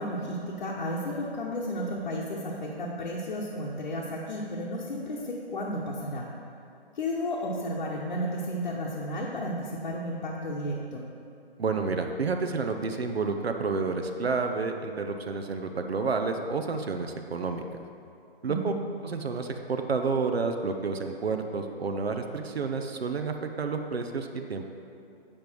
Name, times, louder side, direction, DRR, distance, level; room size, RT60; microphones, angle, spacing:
voice 1, 0.0-6.3 6.9-11.0 18.5-18.7, equal, 55° left, -4 dB, 1.0 m, -33 dB
voice 2, 11.6-17.6 18.4-18.7 19.0-24.7, right 4 dB, 75° right, 5 dB, 0.7 m, -30 dB
8.8 x 5.3 x 4.5 m, 2.6 s
figure-of-eight pair, 150°, 31 cm